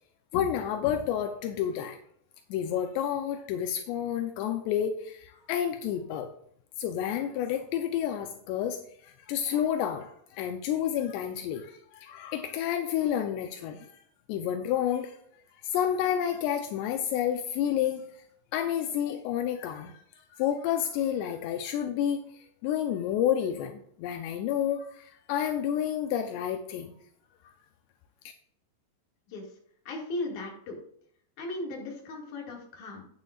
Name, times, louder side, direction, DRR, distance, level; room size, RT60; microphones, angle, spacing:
voice 1, 0.3-2.0 2.5-6.3 6.8-14.0 14.3-15.1 15.6-18.0 18.5-20.0 20.3-22.2 22.6-26.9, left 9 dB, 85° left, 6 dB, 2.8 m, -30 dB
voice 2, 29.8-30.8 31.4-33.1, left 2 dB, 50° left, -1 dB, 3.2 m, -37 dB
11.5 x 9.1 x 2.5 m, 0.65 s
omnidirectional pair, 5.0 m